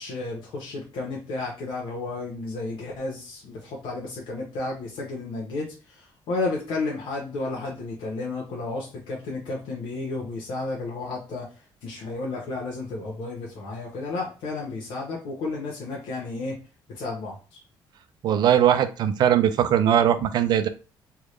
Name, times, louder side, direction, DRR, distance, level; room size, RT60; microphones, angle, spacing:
voice 1, 0.0-16.5 16.9-17.6, left 3 dB, 80° left, -3 dB, 1.1 m, -32 dB
voice 2, 18.2-20.7, right 10 dB, 55° right, 10 dB, 0.4 m, -20 dB
3.6 x 2.4 x 3.2 m, 0.34 s
cardioid pair, 150°, 8 cm